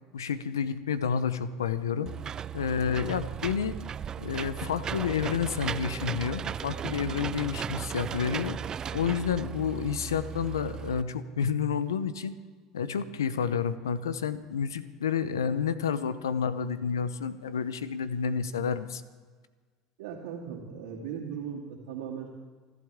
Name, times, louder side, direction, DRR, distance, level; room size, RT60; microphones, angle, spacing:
voice 1, 0.1-2.1 2.5-3.7 4.2-8.6 8.9-12.3 12.7-19.0, left 7 dB, 85° left, 14 dB, 0.8 m, -30 dB
Engine / Mechanisms, 2.1-11.0, right 8 dB, 35° right, 0.4 m, -36 dB
voice 2, 20.0-22.3, right 7 dB, 75° right, -7 dB, 2.8 m, -38 dB
29.5 x 12.0 x 3.7 m, 1.5 s
hypercardioid pair, 75°, 2 cm